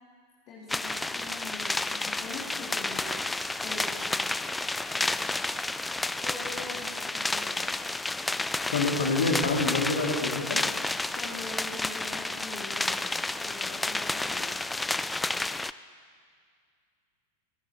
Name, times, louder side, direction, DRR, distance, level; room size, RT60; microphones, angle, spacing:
voice 1, 0.5-3.4 3.6-4.4 6.2-7.9 11.1-14.6, left 3 dB, 40° left, -4 dB, 2.9 m, -43 dB
sound 1, 0.7-15.7, left 2 dB, 5° left, 0.3 m, -31 dB
voice 2, 8.7-10.6, left 3 dB, 65° left, 1 dB, 2.3 m, -27 dB
28.0 x 10.0 x 4.2 m, 2.1 s
figure-of-eight pair, 90°, 0 cm